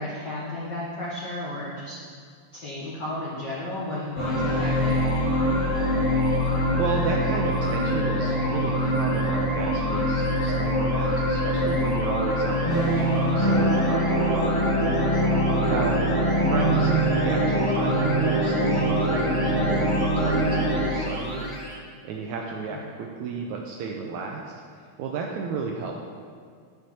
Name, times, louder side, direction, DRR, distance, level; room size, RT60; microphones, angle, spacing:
voice 1, 0.0-2.0 2.5-4.9 15.5-15.9 22.7-22.8, left 1 dB, 65° left, -7 dB, 1.0 m, -33 dB
sound 1, 4.1-21.7, equal, 20° left, 0.8 m, -23 dB
voice 2, 6.8-14.5 15.3-16.0 16.4-21.5 22.0-24.5 25.0-26.0, right 4 dB, 90° right, 1 dB, 1.7 m, -33 dB
9.5 x 6.5 x 4.3 m, 2.2 s
omnidirectional pair, 3.9 m